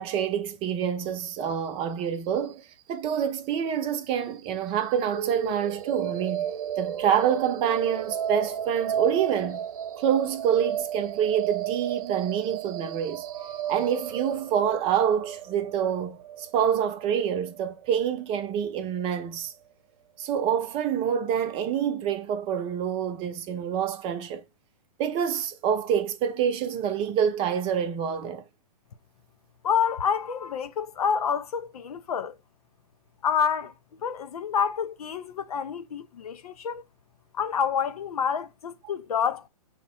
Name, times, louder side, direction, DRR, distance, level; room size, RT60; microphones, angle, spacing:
voice 1, 0.0-2.6 2.9-6.5 6.8-9.6 10.0-13.2 13.7-19.5 20.2-24.4 25.0-28.4, right 8 dB, 30° right, 0.7 m, -27 dB
sound 1, 5.1-19.1, right 9 dB, 70° right, 0.6 m, -34 dB
voice 2, 29.6-32.4 33.2-33.7 34.0-36.8 37.3-39.5, left 7 dB, 75° left, 0.7 m, -28 dB
5.7 x 2.2 x 4.3 m
hypercardioid pair, 130°, 19 cm